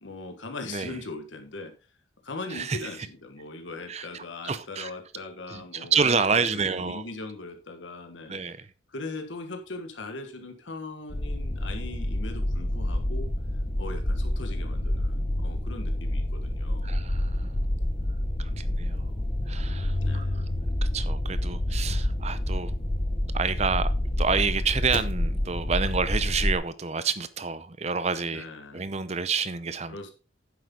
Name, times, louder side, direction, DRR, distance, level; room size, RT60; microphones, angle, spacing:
voice 1, 0.0-1.7 2.2-8.3 8.9-13.3 13.8-16.9 18.4-18.8 20.0-20.4 22.2-22.4 28.3-28.8 29.9-30.1, left 3 dB, 75° left, 1.6 m, -40 dB
voice 2, 2.5-2.8 3.9-4.9 5.5-7.0 8.3-8.7 16.8-17.7 18.4-19.1 19.5-20.5 20.9-22.7 23.3-23.9 24.2-28.4 28.7-30.1, right 5 dB, 35° right, 0.6 m, -29 dB
sound 1, 11.1-26.5, left 1 dB, 30° left, 1.0 m, -28 dB
9.9 x 7.8 x 3.9 m
head